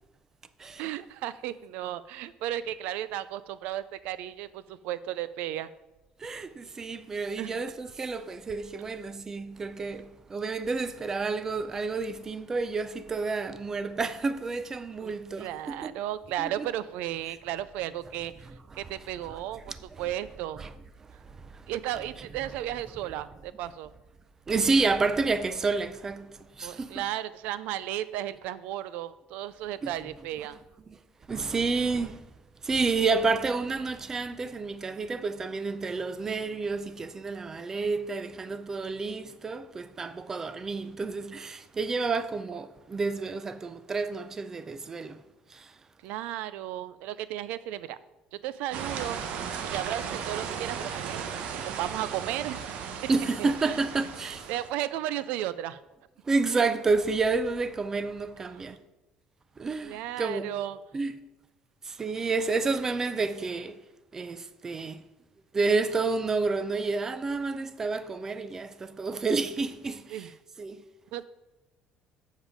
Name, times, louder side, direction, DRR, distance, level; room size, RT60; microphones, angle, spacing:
voice 1, 0.8-5.7 7.4-7.6 15.0-15.1 15.4-18.3 18.8-19.6 20.0-20.6 21.7-23.9 26.6-30.6 46.0-48.0 48.3-49.2 49.7-51.3 51.6-53.1 53.4-53.8 54.2-55.8 59.8-60.8 70.1-70.3 71.1-71.2, right 13 dB, 80° right, 0.4 m, -34 dB
voice 2, 6.2-15.9 16.4-16.7 18.4-18.9 19.3-19.4 19.7-20.1 20.6-20.7 21.0-21.7 24.5-27.1 29.8-29.9 30.9-31.0 31.3-32.2 32.6-45.2 45.5-45.8 53.1-54.5 56.2-58.8 59.6-60.5 60.9-61.2 61.8-63.8 64.1-65.0 65.5-70.3 70.6-70.8, right 4 dB, 20° right, 0.5 m, -30 dB
sound 1, 48.7-54.7, right 7 dB, 60° right, 0.8 m, -36 dB
7.3 x 7.2 x 5.0 m
cardioid pair, 155°, 2 cm